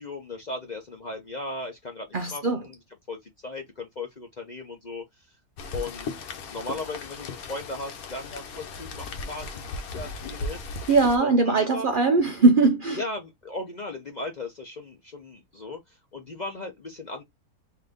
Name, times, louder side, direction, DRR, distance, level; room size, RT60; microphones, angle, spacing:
voice 1, 0.0-2.8 3.1-5.0 5.7-6.1 6.5-10.7 11.2-11.9 12.9-15.8 16.1-17.2, left 2 dB, 45° left, 0.6 m, -37 dB
voice 2, 2.1-2.6 10.9-13.0, right 3 dB, 65° right, 0.5 m, -20 dB
Rain, 5.6-11.2, left 3 dB, 75° left, 1.2 m, -37 dB
3.8 x 2.8 x 3.4 m
omnidirectional pair, 1.6 m